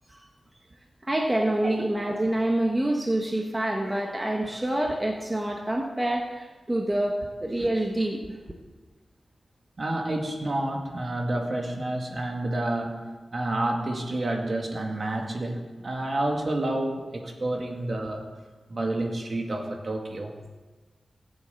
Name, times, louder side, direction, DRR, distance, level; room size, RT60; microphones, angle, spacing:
voice 1, 1.0-8.4, right 1 dB, 15° right, 1 dB, 1.2 m, -27 dB
voice 2, 9.8-18.2 18.7-20.4, right 1 dB, 45° right, 2 dB, 2.1 m, -29 dB
17.0 x 7.3 x 8.3 m, 1.3 s
wide cardioid pair, 135°, 0 cm